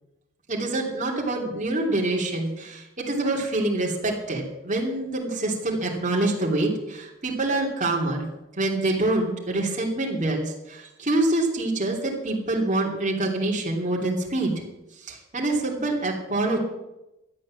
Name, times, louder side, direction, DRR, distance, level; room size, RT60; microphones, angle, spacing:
voice 1, 0.5-8.2 8.6-14.5 15.0-16.6, right 2 dB, 35° right, -2 dB, 3.0 m, -26 dB
13.0 x 8.6 x 7.6 m, 0.94 s
head